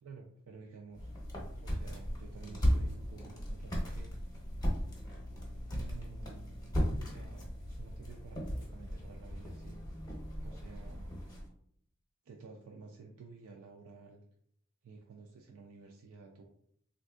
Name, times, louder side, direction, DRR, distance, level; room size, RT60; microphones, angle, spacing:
voice 1, 0.0-1.1 1.6-4.1 5.7-6.6 7.0-9.8 10.4-11.2 12.2-14.2 14.8-16.4, right 4 dB, 85° right, 1 dB, 0.4 m, -52 dB
sound 1, 0.9-11.5, equal, 15° left, 0.7 m, -36 dB
3.4 x 2.5 x 2.3 m, 0.68 s
head